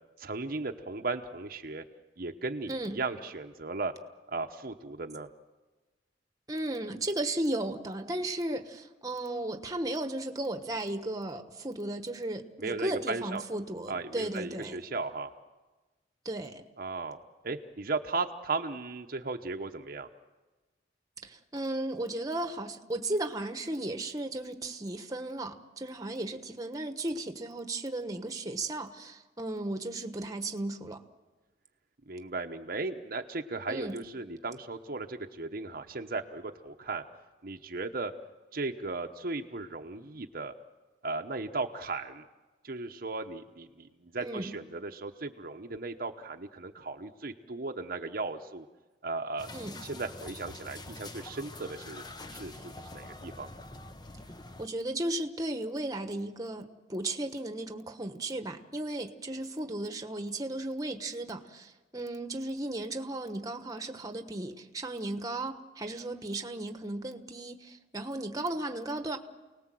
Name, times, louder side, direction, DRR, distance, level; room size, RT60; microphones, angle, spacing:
voice 1, 0.2-1.8 2.2-3.9 4.3-5.3 12.6-13.4 13.9-15.3 16.8-17.2 17.4-20.1 32.1-37.0 37.4-38.1 38.5-40.5 41.0-42.2 42.6-48.7 49.0-49.5 49.8-52.0 52.3-53.6, right 3 dB, 50° right, 4 dB, 0.9 m, -36 dB
voice 2, 2.7-3.0 6.5-14.8 16.2-16.6 21.2-31.0 33.7-34.0 44.2-44.5 49.5-49.8 54.6-69.2, right 1 dB, 20° right, 7 dB, 1.2 m, -35 dB
sound 1, 49.4-54.7, left 2 dB, 25° left, 0.9 m, -45 dB
29.0 x 19.0 x 7.7 m, 1.2 s
head